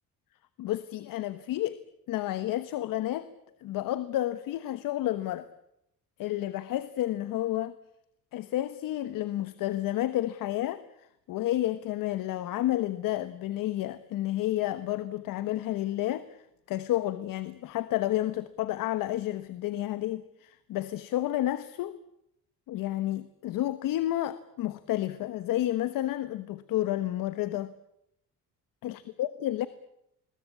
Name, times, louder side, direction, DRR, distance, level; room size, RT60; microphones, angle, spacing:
voice 1, 0.6-1.8 2.1-3.3 3.6-5.5 6.2-7.7 8.3-10.8 11.3-16.3 16.7-22.0 22.7-27.7 28.8-29.7, left 14 dB, 85° left, 1.3 m, -30 dB
28.5 x 22.5 x 8.5 m
cardioid pair, 145°, 33 cm